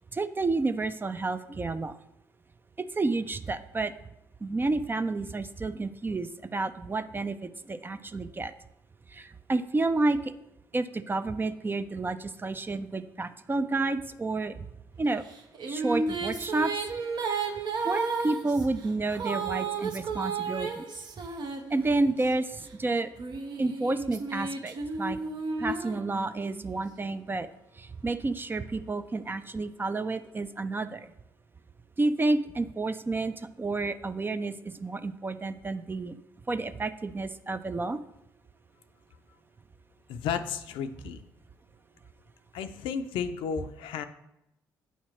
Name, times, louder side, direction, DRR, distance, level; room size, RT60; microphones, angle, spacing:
voice 1, 0.1-1.9 2.8-3.9 4.4-8.5 9.1-10.2 10.7-14.7 15.0-15.2 15.7-16.8 17.8-20.9 21.7-23.1 23.6-25.2 25.6-27.5 27.8-31.1 32.0-34.5 34.8-36.2 36.5-38.0, right 3 dB, 25° right, 11 dB, 0.4 m, -30 dB
Female singing, 15.3-22.2 22.9-26.6, right 4 dB, 55° right, 0.8 m, -33 dB
voice 2, 40.1-41.2 42.5-44.1, left 7 dB, 70° left, 10 dB, 0.5 m, -33 dB
8.2 x 2.9 x 4.3 m, 0.85 s
hypercardioid pair, 50°, 9 cm